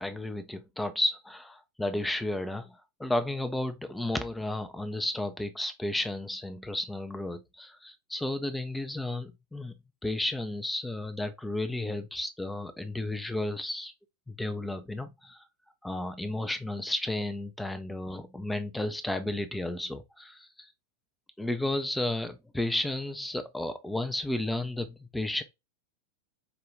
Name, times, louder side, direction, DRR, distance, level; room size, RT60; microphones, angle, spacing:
voice 1, 0.0-9.7 10.0-13.9 14.3-15.4 15.8-20.7 21.4-25.4, left 1 dB, 5° left, 0.4 m, -33 dB
4.9 x 2.2 x 3.3 m
figure-of-eight pair, 90°, 0 cm